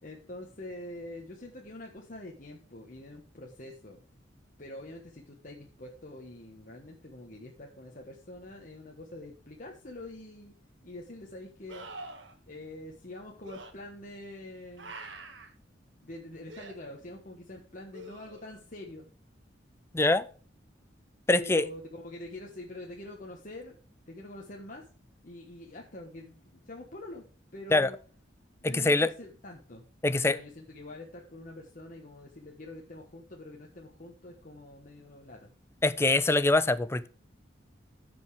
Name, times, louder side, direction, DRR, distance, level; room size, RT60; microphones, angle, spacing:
voice 1, 0.0-4.0 4.6-10.5 10.8-11.9 12.5-15.0 16.0-19.1 21.4-23.8 24.1-24.9 25.2-27.2 27.5-28.0 28.6-35.5, left 1 dB, 45° left, 1.3 m, -45 dB
sound 1, 10.1-10.2 11.7-12.3 13.4-13.7 14.8-15.5 16.5-16.7 17.9-18.6 21.7-21.8, right 2 dB, 75° right, 1.8 m, -45 dB
voice 2, 21.3-21.7 27.7-27.9 28.6-29.1 30.0-30.4 35.8-37.1, left 2 dB, 15° left, 0.5 m, -24 dB
14.5 x 5.4 x 3.4 m
head